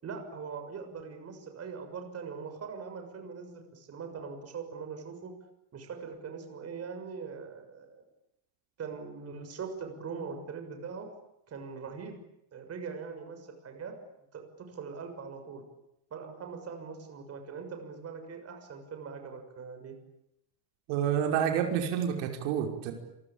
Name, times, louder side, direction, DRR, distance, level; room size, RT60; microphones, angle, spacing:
voice 1, 0.0-5.3 5.7-8.0 8.8-11.1 11.5-12.2 12.5-13.9 14.3-15.6 16.1-20.0, right 5 dB, 30° right, 5 dB, 6.7 m, -41 dB
voice 2, 20.9-22.9, right 8 dB, 85° right, 4 dB, 5.6 m, -28 dB
28.0 x 24.0 x 8.8 m, 0.85 s
cardioid pair, 160°, 47 cm